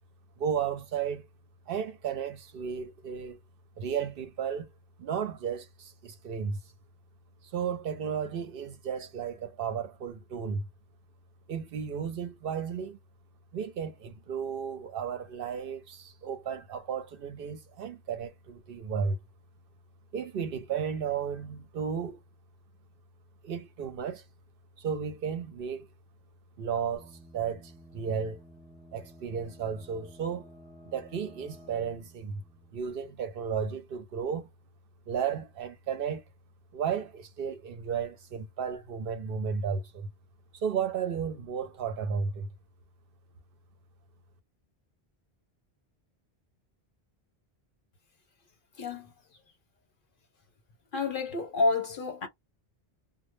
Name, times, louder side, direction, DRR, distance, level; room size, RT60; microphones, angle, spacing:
voice 1, 0.4-1.3 1.7-3.4 3.8-4.7 5.0-6.6 7.5-10.7 11.5-13.0 13.5-19.2 20.1-22.2 23.4-24.2 24.8-25.9 26.6-28.4 28.9-30.5 30.9-32.4 32.7-34.5 35.1-36.2 36.7-40.1 40.5-42.5, right 7 dB, 65° right, 0.7 m, -34 dB
sound 1, 26.9-33.5, equal, 10° right, 0.4 m, -53 dB
voice 2, 48.8-49.1 50.9-52.3, left 3 dB, 60° left, 0.9 m, -29 dB
2.1 x 2.0 x 3.0 m
omnidirectional pair, 1.1 m